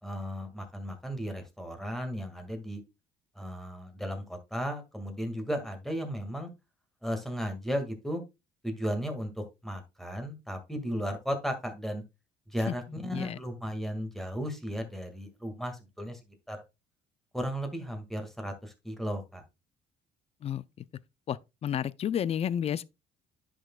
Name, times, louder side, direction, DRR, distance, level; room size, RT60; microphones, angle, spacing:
voice 1, 0.0-2.8 3.4-6.5 7.0-8.2 8.6-12.0 12.5-16.2 16.5-16.6 17.3-19.4, equal, ahead, 2.0 m, -35 dB
voice 2, 20.4-20.8 21.3-22.8, left 9 dB, 35° left, 0.4 m, -31 dB
10.0 x 6.2 x 2.3 m
cardioid pair, 110°, 17 cm